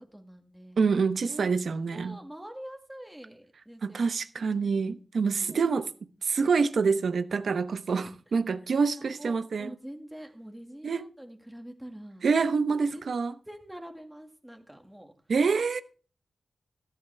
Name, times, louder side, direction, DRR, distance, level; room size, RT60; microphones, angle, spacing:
voice 1, 0.1-0.9 1.3-1.5 1.9-4.0 4.4-4.7 5.4-5.9 9.0-12.3 12.9-13.1 13.5-15.1, equal, 5° right, 1.9 m, -45 dB
voice 2, 0.8-2.2 3.8-5.8 6.2-9.7 10.8-11.1 12.2-13.3 15.3-15.8, right 5 dB, 70° right, 0.9 m, -26 dB
13.5 x 13.0 x 3.4 m
wide cardioid pair, 120°, 0 cm